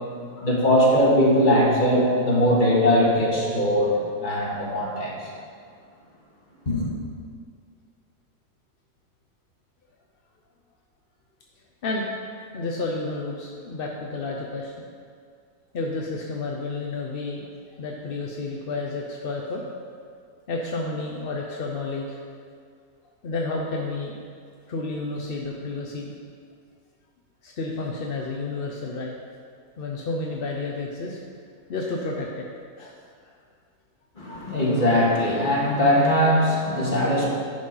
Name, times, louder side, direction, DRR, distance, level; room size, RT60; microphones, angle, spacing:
voice 1, 0.4-5.3 6.7-6.9 34.2-37.3, equal, 30° left, -5 dB, 1.9 m, -20 dB
voice 2, 12.5-14.8 15.7-17.4 17.8-19.6 20.5-22.2 23.2-24.2 24.7-26.1 27.4-29.1 29.8-31.2 31.7-32.4 32.8-33.0 33.3-33.4, left 3 dB, 50° left, -1 dB, 0.7 m, -31 dB
10.0 x 5.2 x 5.5 m, 2.2 s
omnidirectional pair, 1.7 m